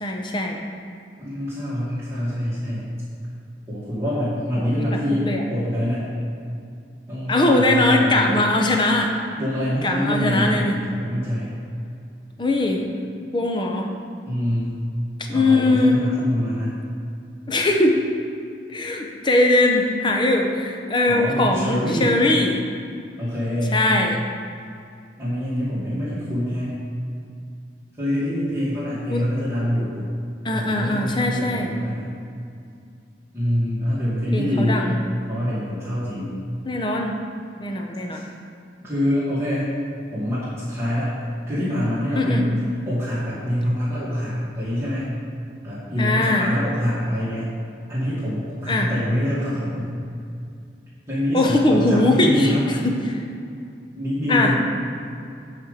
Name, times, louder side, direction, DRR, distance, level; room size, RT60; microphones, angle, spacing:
voice 1, 0.0-0.6 4.6-5.4 7.3-9.1 9.8-10.8 12.4-12.8 13.3-13.9 15.3-16.0 17.5-18.0 18.7-22.6 23.7-24.2 29.1-29.3 30.4-31.8 34.3-35.0 36.6-37.2 37.6-38.2 42.2-42.5 46.0-46.5 48.6-48.9 51.3-52.5 52.8-53.2 54.3-54.5, left 2 dB, 25° left, 2 dB, 0.8 m, -20 dB
voice 2, 1.2-2.9 3.7-6.1 7.1-8.4 9.4-11.5 14.2-14.7 15.3-16.8 21.1-22.1 23.2-23.8 25.2-26.7 28.0-30.0 30.5-32.1 33.3-34.8 35.3-36.3 38.1-38.3 38.8-39.7 40.1-41.1 41.5-45.1 45.6-47.5 47.9-49.9 51.1-52.7 53.9-54.6, equal, 15° right, -12 dB, 2.2 m, -25 dB
8.7 x 5.2 x 6.5 m, 2.4 s
head